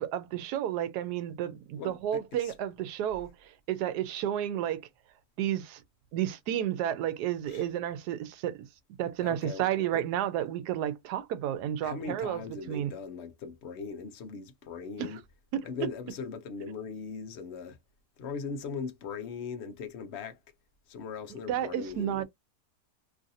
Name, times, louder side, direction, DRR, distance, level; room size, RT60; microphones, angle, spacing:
voice 1, 0.0-4.8 5.4-5.8 6.1-8.7 9.0-12.9 15.0-15.2 15.5-15.7 21.5-22.2, right 11 dB, 80° right, 1.1 m, -31 dB
voice 2, 1.8-2.5 7.4-7.7 9.2-9.7 11.8-15.2 15.6-17.8 18.2-20.4 20.9-22.2, left 5 dB, 55° left, 0.8 m, -39 dB
3.1 x 2.5 x 2.6 m
omnidirectional pair, 1.7 m